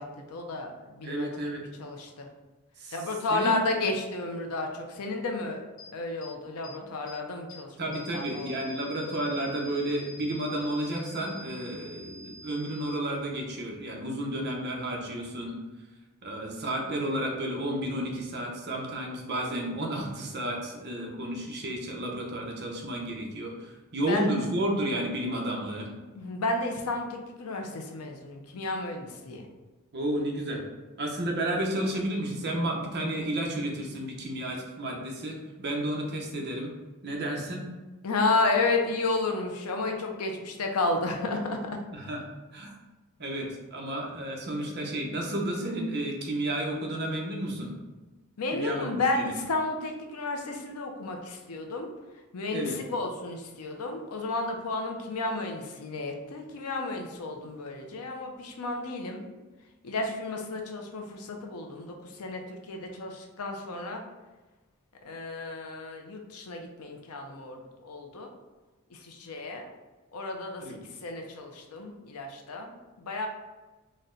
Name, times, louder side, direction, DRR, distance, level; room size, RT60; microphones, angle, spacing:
voice 1, 0.0-1.5 1.8-2.3 2.9-5.6 5.9-8.5 24.1-24.3 26.1-29.5 38.0-41.6 48.4-51.9 52.1-59.2 59.8-64.0 65.0-68.3 68.9-69.7 70.1-73.3, left 2 dB, 90° left, 3 dB, 0.6 m, -32 dB
voice 2, 1.0-1.6 2.8-3.0 3.3-3.6 7.8-15.6 16.2-25.9 29.9-30.6 31.0-36.7 37.0-37.6 41.9-42.2 42.5-42.7 43.2-47.7 48.5-49.3 52.5-52.8 70.6-70.8, right 1 dB, 50° right, 0 dB, 0.7 m, -32 dB
sound 1, 5.8-5.9 6.2-6.3 6.6-6.7 7.1-7.2 7.5-7.6 7.9-12.9, left 2 dB, 75° left, 1.2 m, -47 dB
4.1 x 2.1 x 3.8 m, 1.2 s
head